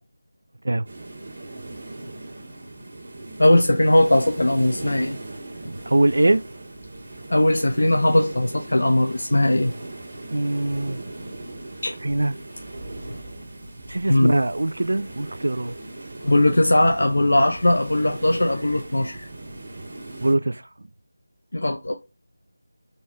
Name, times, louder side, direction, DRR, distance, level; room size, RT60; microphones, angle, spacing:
sound 1, 0.9-20.4, right 2 dB, 40° right, 1.6 m, -39 dB
voice 1, 3.4-5.2 7.3-9.7 11.8-11.9 14.1-14.3 16.2-19.3 21.5-21.9, left 1 dB, 75° left, 0.6 m, -19 dB
voice 2, 5.6-6.5 10.3-11.1 12.0-12.4 13.9-15.8 19.7-19.8 20.2-20.9, right 2 dB, 70° right, 0.3 m, -23 dB
4.1 x 3.1 x 3.4 m
figure-of-eight pair, 170°, 0 cm